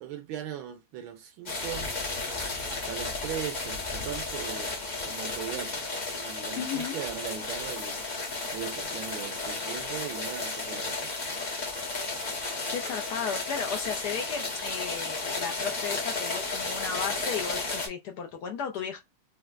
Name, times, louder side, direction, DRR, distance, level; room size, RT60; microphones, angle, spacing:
voice 1, 0.0-1.9 2.7-4.7 5.0-5.9 6.1-8.0 8.5-11.2, right 10 dB, 85° right, 1.5 m, -39 dB
sound 1, 1.4-17.9, left 3 dB, 40° left, 0.6 m, -33 dB
voice 2, 6.6-6.9 12.6-19.0, left 7 dB, 75° left, 1.0 m, -34 dB
4.3 x 2.1 x 2.4 m
omnidirectional pair, 2.2 m